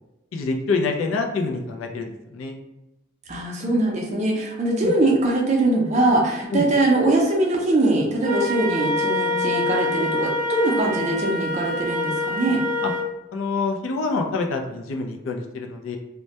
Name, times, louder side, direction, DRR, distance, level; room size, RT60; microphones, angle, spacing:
voice 1, 0.3-2.6 4.8-4.9 6.5-6.7 12.8-12.9 13.3-16.0, left 3 dB, 75° left, 2 dB, 0.4 m, -26 dB
voice 2, 3.3-12.6, right 1 dB, 35° right, -1 dB, 0.4 m, -22 dB
Wind instrument woodwind instrument, 8.2-13.1, left 1 dB, 30° left, 0.9 m, -25 dB
2.2 x 2.1 x 2.7 m, 0.96 s
head